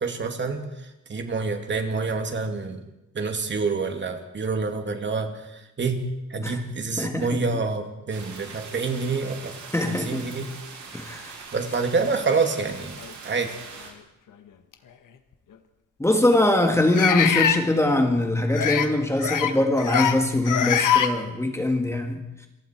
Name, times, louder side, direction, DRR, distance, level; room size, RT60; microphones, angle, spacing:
voice 1, 0.0-0.6 1.1-2.8 3.1-6.0 6.3-9.5 9.9-10.5 11.5-13.0 13.2-13.6, right 4 dB, 35° right, 5 dB, 2.5 m, -27 dB
voice 2, 7.0-7.3 9.7-10.3 10.9-11.3 16.0-22.5, left 1 dB, 10° left, 4 dB, 1.6 m, -22 dB
sound 1, 8.1-13.9, right 5 dB, 70° right, 6.9 m, -42 dB
sound 2, 12.1-12.2 13.0-13.1 14.7-14.8 16.9-17.6 18.5-18.9 19.2-19.5 19.8-20.2 20.4-21.1, left 9 dB, 85° left, 1.7 m, -22 dB
27.5 x 23.5 x 4.6 m, 0.93 s
wide cardioid pair, 170°, 30 cm